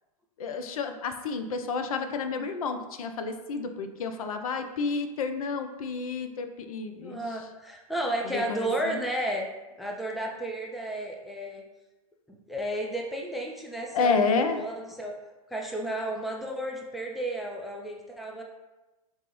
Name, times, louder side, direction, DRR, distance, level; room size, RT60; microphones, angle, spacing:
voice 1, 0.4-7.2 8.3-9.0 13.9-14.6, left 4 dB, 65° left, 7 dB, 0.4 m, -30 dB
voice 2, 7.0-9.5 9.8-11.6 12.3-15.1 15.5-18.4, right 1 dB, ahead, 0 dB, 0.3 m, -33 dB
4.4 x 2.0 x 3.0 m, 1.1 s
figure-of-eight pair, 100°, 19 cm